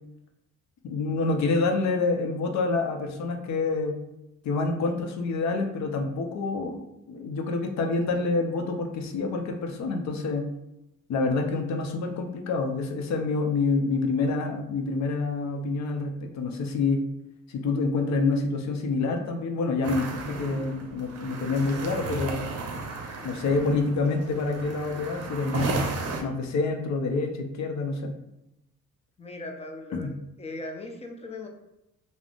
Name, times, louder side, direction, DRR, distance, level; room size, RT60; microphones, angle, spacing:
voice 1, 0.8-4.0 4.4-10.5 11.1-17.0 17.5-22.5 23.2-25.8 26.2-28.2 29.9-30.1, left 3 dB, 65° left, 4 dB, 0.6 m, -27 dB
sound 1, 19.8-26.2, right 3 dB, 55° right, 0.6 m, -34 dB
voice 2, 29.2-30.1 30.4-31.5, left 2 dB, 20° left, 2 dB, 0.5 m, -38 dB
3.6 x 2.0 x 2.4 m, 0.89 s
cardioid pair, 90°, 30 cm